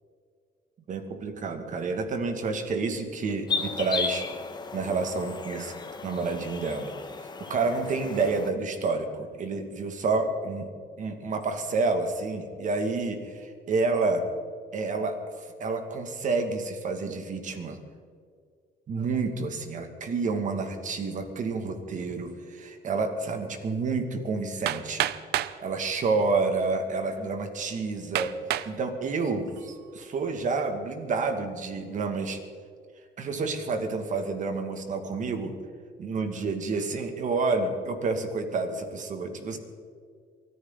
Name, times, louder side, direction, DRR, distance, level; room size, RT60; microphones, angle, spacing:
voice 1, 0.9-4.3 4.7-6.9 7.2-10.7 11.0-14.3 14.7-17.8 18.9-25.1 25.6-28.3 28.7-32.4 33.2-35.5 36.0-39.6, right 3 dB, 50° right, 6 dB, 2.4 m, -29 dB
sound 1, 3.5-8.5, left 4 dB, 25° left, 1.6 m, -35 dB
Hammer, 24.7-25.6 26.5-26.6 27.2-27.3 28.1-28.7 29.3-29.8, right 13 dB, 75° right, 0.7 m, -29 dB
23.5 x 14.5 x 4.1 m, 2.1 s
cardioid pair, 110°, 17 cm